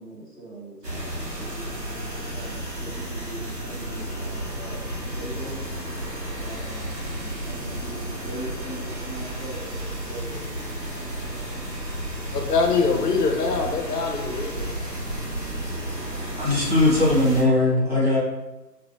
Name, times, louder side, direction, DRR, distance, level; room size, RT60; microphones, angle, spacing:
voice 1, 0.0-1.7 2.1-5.6 6.4-11.4 12.9-13.2 17.2-18.0, right 1 dB, 5° left, -18 dB, 1.0 m, -41 dB
sound 1, 0.8-17.4, right 1 dB, 85° right, 1.0 m, -32 dB
voice 2, 12.3-14.7, left 4 dB, 75° left, 3 dB, 0.6 m, -23 dB
voice 3, 16.4-18.2, left 2 dB, 40° right, -8 dB, 0.8 m, -19 dB
2.5 x 2.0 x 2.9 m, 1.0 s
figure-of-eight pair, 160°, 49 cm